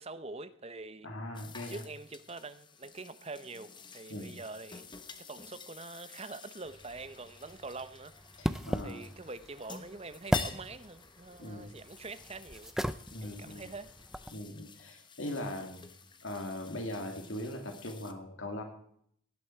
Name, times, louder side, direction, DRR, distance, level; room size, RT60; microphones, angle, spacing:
voice 1, 0.0-1.1 1.7-5.0 5.3-8.5 8.8-12.7 13.2-13.9, right 3 dB, 30° right, 0.8 m, -45 dB
voice 2, 1.0-1.8 4.1-4.4 8.4-9.0 11.4-11.7 13.1-13.7 14.3-15.9 16.2-18.6, left 1 dB, 70° left, 2.5 m, -40 dB
sound 1, 1.3-18.1, left 5 dB, 20° left, 1.0 m, -50 dB
sound 2, 6.7-14.4, equal, ahead, 0.5 m, -38 dB
17.5 x 12.0 x 4.6 m
head